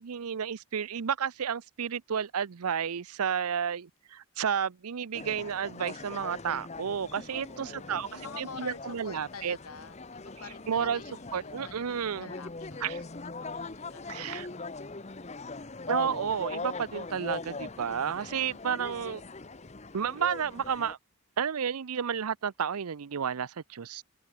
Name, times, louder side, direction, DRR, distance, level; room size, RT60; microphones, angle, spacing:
voice 1, 0.0-8.1 8.4-9.6 10.7-11.0 11.3-12.3 12.8-13.0 14.1-14.5 15.9-19.2 19.9-21.0 21.4-24.0, right 7 dB, 85° right, 0.6 m, -31 dB
sound 1, 5.1-20.9, left 3 dB, 30° left, 0.8 m, -41 dB
voice 2, 7.3-15.0, left 5 dB, 85° left, 2.3 m, -48 dB
head